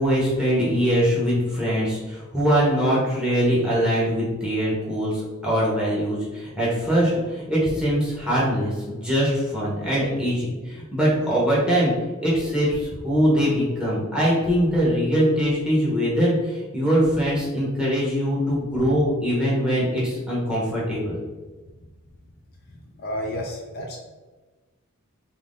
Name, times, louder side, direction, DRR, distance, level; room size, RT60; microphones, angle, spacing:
voice 1, 0.0-11.9 12.2-21.2, equal, 5° right, -8 dB, 0.8 m, -22 dB
voice 2, 22.9-24.0, equal, 45° left, 0 dB, 0.4 m, -31 dB
3.0 x 2.5 x 3.4 m, 1.3 s
head